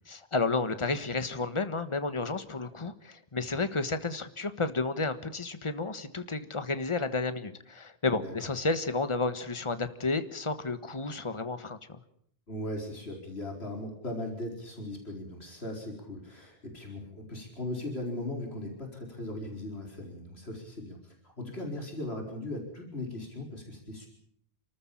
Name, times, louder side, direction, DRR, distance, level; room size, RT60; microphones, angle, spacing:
voice 1, 0.1-12.0, left 3 dB, 30° left, 11 dB, 1.5 m, -31 dB
voice 2, 12.5-24.1, left 1 dB, 90° left, 1 dB, 4.9 m, -38 dB
29.5 x 14.0 x 8.6 m, 0.67 s
omnidirectional pair, 1.0 m